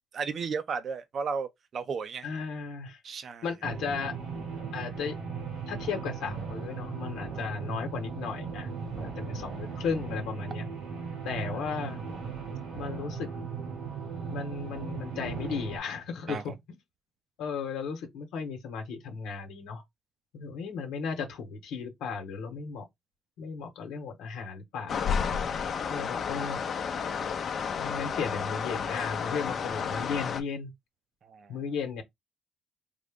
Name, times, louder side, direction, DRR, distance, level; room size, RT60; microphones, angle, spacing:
voice 1, 0.1-2.3 3.0-3.4 11.4-11.6 16.3-16.4 26.0-26.1 31.2-31.6, right 5 dB, 55° right, 0.5 m, -34 dB
voice 2, 2.2-3.0 3.4-4.1 4.7-5.2 5.7-10.6 11.2-12.0 12.7-13.3 14.3-16.5 17.4-19.8 20.3-22.8 23.4-25.2 25.9-26.6 27.8-30.7 31.5-32.0, left 5 dB, 90° left, 1.0 m, -35 dB
sound 1, 3.6-15.8, right 5 dB, 85° right, 1.2 m, -37 dB
sound 2, 24.9-30.4, left 6 dB, 55° left, 0.6 m, -31 dB
3.7 x 2.1 x 3.5 m
cardioid pair, 90°, 0 cm